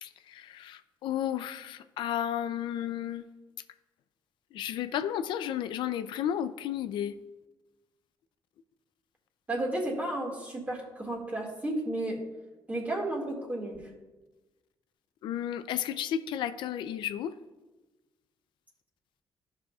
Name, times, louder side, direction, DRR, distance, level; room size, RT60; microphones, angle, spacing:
voice 1, 0.0-3.3 4.5-7.1 15.2-17.3, left 10 dB, 80° left, 11 dB, 0.4 m, -33 dB
voice 2, 9.5-12.2 12.7-13.8, right 1 dB, 20° right, 0 dB, 1.8 m, -32 dB
13.5 x 6.3 x 2.3 m, 1.1 s
cardioid pair, 140°, 8 cm